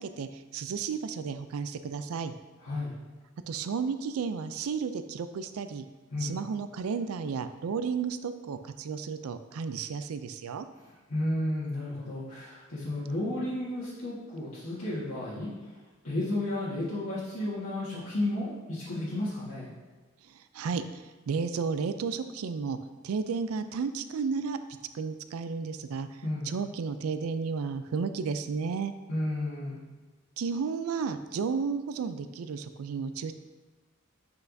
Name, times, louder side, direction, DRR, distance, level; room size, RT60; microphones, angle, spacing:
voice 1, 0.0-2.3 3.5-5.9 6.2-10.7 20.3-22.8 23.0-24.6 24.9-26.1 26.4-28.9 30.4-33.3, right 5 dB, 85° right, 10 dB, 0.4 m, -33 dB
voice 2, 2.6-2.9 6.1-6.3 10.8-15.7 16.0-19.7 26.2-26.5 29.1-29.8, left 1 dB, 70° left, -10 dB, 1.6 m, -33 dB
7.7 x 5.7 x 2.6 m, 1.3 s
head